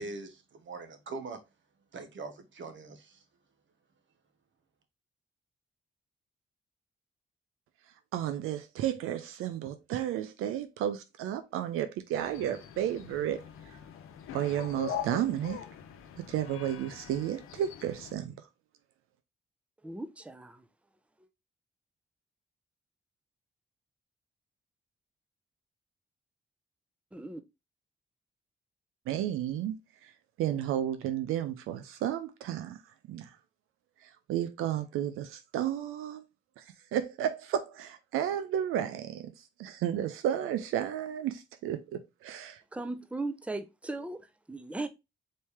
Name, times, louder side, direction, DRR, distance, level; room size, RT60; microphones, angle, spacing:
voice 1, 0.0-1.4 1.9-3.2, right 3 dB, 65° right, 1.1 m, -42 dB
voice 2, 8.1-13.4 14.3-15.6 16.3-18.3 29.1-29.8 30.0-30.1 30.4-32.8 33.1-33.3 34.0-36.2 36.6-36.7 36.9-42.6, right 11 dB, 90° right, 0.4 m, -32 dB
sound 1, 12.1-18.1, left 8 dB, 85° left, 0.7 m, -42 dB
voice 3, 19.8-20.7 27.1-27.4 42.7-44.9, right 2 dB, 5° right, 0.6 m, -38 dB
4.2 x 3.2 x 3.4 m
supercardioid pair, 50°, 21 cm